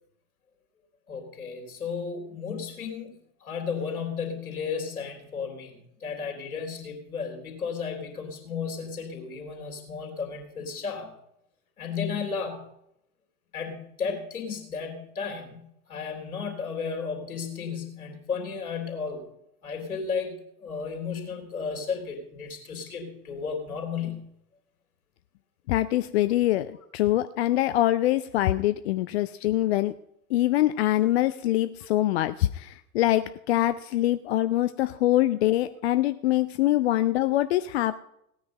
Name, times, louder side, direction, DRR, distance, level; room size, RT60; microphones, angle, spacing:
voice 1, 1.1-3.1 3.4-11.1 11.8-12.6 13.5-19.2 19.6-24.2, left 5 dB, 70° left, 3 dB, 3.6 m, -34 dB
voice 2, 25.7-29.9 30.3-37.9, left 14 dB, 45° left, 13 dB, 0.5 m, -24 dB
17.0 x 9.3 x 5.3 m, 0.79 s
figure-of-eight pair, 85°, 45 cm